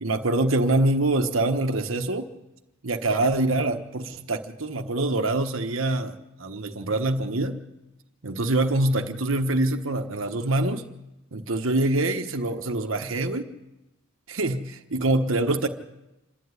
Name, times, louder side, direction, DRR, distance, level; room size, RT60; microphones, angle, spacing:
voice 1, 0.0-2.2 2.8-7.6 8.2-10.8 11.3-13.5 14.3-15.7, right 2 dB, 75° right, 5 dB, 1.3 m, -25 dB
26.5 x 11.5 x 9.7 m, 0.94 s
head